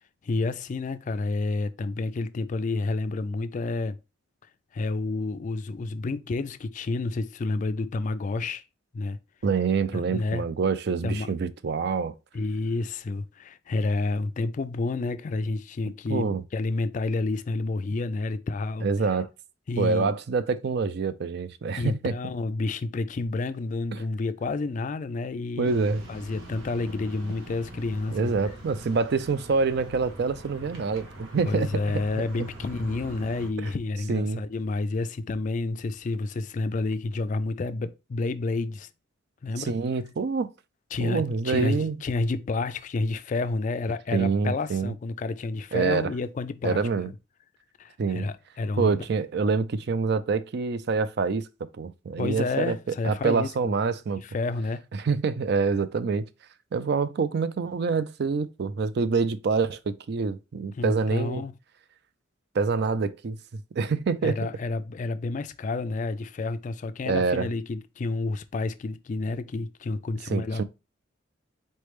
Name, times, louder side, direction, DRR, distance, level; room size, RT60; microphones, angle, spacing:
voice 1, 0.2-4.0 4.7-8.6 8.9-9.2 9.9-10.4 11.0-11.3 12.3-18.9 19.7-20.2 21.8-28.5 31.5-38.9 39.4-39.7 40.9-47.1 47.8-48.9 52.2-53.5 54.2-54.9 60.8-61.5 64.2-70.6, left 3 dB, 40° left, 0.3 m, -30 dB
voice 2, 9.4-12.1 16.1-16.4 18.8-19.3 19.8-22.1 23.9-24.0 25.6-26.0 28.1-32.0 33.6-33.7 34.1-34.4 39.6-40.5 41.0-42.0 44.1-44.9 45.7-46.1 46.6-47.1 48.0-48.3 48.8-51.5 51.8-54.2 54.9-56.3 56.7-61.4 62.5-63.4 63.8-64.4 67.1-67.5 70.3-70.6, right 4 dB, 55° right, 0.4 m, -26 dB
sound 1, 25.6-33.5, right 1 dB, 85° right, 1.2 m, -43 dB
4.3 x 3.3 x 3.1 m
head